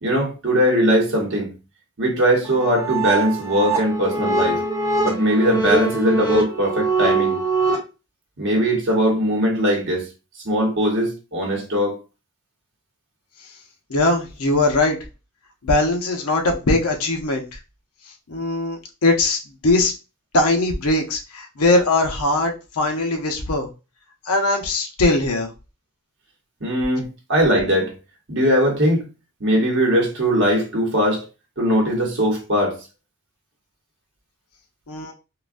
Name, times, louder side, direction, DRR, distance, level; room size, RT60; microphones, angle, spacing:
voice 1, 0.0-1.5 2.0-4.6 5.0-7.4 8.4-10.1 10.4-12.0 26.6-27.9 28.3-29.0 29.4-31.2 31.6-32.8, equal, 55° right, 1.0 m, -20 dB
sound 1, 2.4-7.8, right 3 dB, 10° right, 0.8 m, -22 dB
voice 2, 13.9-15.0 15.6-17.4 18.3-19.9 20.3-23.7 24.2-25.5 34.9-35.1, left 2 dB, 90° left, 0.8 m, -20 dB
3.8 x 2.2 x 2.5 m
head